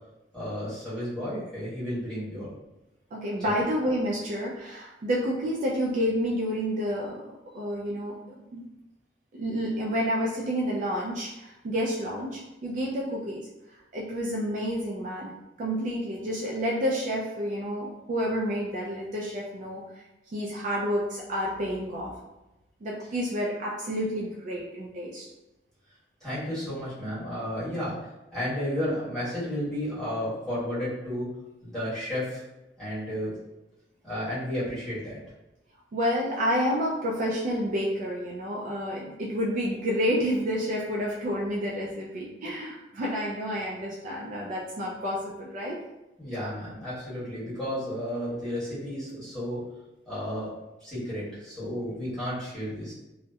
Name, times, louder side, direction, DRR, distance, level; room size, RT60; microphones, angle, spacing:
voice 1, 0.3-2.5 3.4-3.5 23.0-23.2 26.2-28.0 28.3-31.3 31.6-32.4 32.8-33.3 34.0-35.2 46.2-49.6 50.0-50.5 50.8-52.9, equal, 5° left, -13 dB, 1.3 m, -32 dB
voice 2, 3.1-7.2 7.5-8.2 8.5-8.7 9.4-13.4 13.9-15.3 15.6-19.8 20.3-22.1 22.8-25.3 35.9-45.8, equal, 45° right, -3 dB, 0.3 m, -29 dB
2.7 x 2.0 x 2.2 m, 0.98 s
head